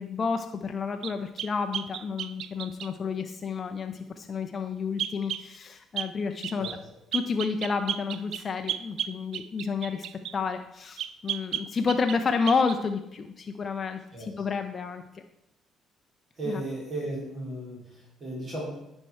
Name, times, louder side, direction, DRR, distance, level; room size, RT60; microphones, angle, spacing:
voice 1, 0.0-6.7 7.1-10.1 10.3-15.2 16.5-16.6, left 5 dB, 45° left, 6 dB, 0.6 m, -30 dB
sound 1, 1.0-2.9 5.0-5.5 6.0-6.1 6.4-6.8 7.1-10.4 11.0-12.2 12.5-12.8, right 10 dB, 65° right, 0.3 m, -34 dB
voice 2, 16.4-18.6, right 1 dB, 50° right, -6 dB, 3.4 m, -35 dB
10.0 x 4.4 x 4.5 m, 0.87 s
hypercardioid pair, 50°, 0 cm